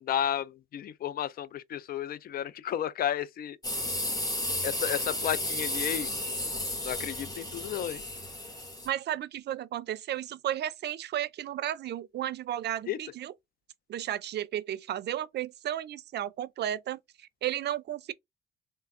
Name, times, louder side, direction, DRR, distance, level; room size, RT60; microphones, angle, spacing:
voice 1, 0.0-3.6 4.6-6.1 6.8-8.0 12.9-13.0, left 10 dB, 50° left, 0.4 m, -32 dB
sound 1, 3.6-8.9, left 1 dB, 20° left, 1.2 m, -33 dB
voice 2, 8.8-13.3 13.9-18.1, right 11 dB, 60° right, 0.5 m, -33 dB
3.3 x 2.1 x 3.5 m
cardioid pair, 90°, 20 cm